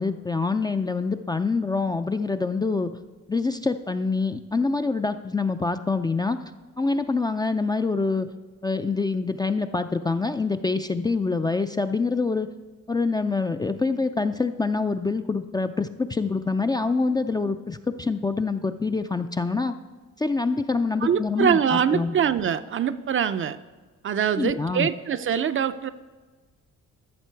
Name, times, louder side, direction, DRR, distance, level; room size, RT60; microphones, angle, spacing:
voice 1, 0.0-2.9 3.3-6.4 6.8-8.3 8.6-12.5 12.9-19.7 20.2-22.2 24.4-24.9, left 4 dB, 15° left, 8 dB, 0.3 m, -25 dB
voice 2, 21.0-23.6 24.0-25.9, right 8 dB, 45° right, 12 dB, 0.5 m, -24 dB
13.0 x 6.7 x 4.5 m, 1.3 s
cardioid pair, 90°, 30 cm